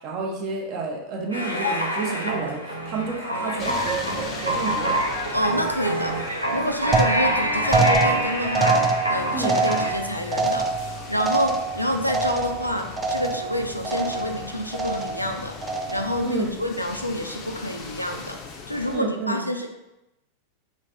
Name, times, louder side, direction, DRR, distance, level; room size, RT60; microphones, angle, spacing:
voice 1, 0.0-5.0 9.3-9.6 16.2-16.5 18.9-19.5, right 4 dB, 40° right, 0 dB, 0.8 m, -30 dB
sound 1, 1.3-9.9, equal, 90° right, 0.6 m, -26 dB
sound 2, 3.6-19.0, left 5 dB, 35° left, 0.5 m, -40 dB
voice 2, 5.3-6.2 6.5-18.4 18.7-19.7, equal, 90° left, 4 dB, 0.3 m, -28 dB
sound 3, 6.9-12.7 13.0-13.5 13.8-14.4 14.7-15.3 15.6-16.2, right 4 dB, 20° right, 0.3 m, -25 dB
3.1 x 2.5 x 4.0 m, 0.93 s
figure-of-eight pair, 90°, 0 cm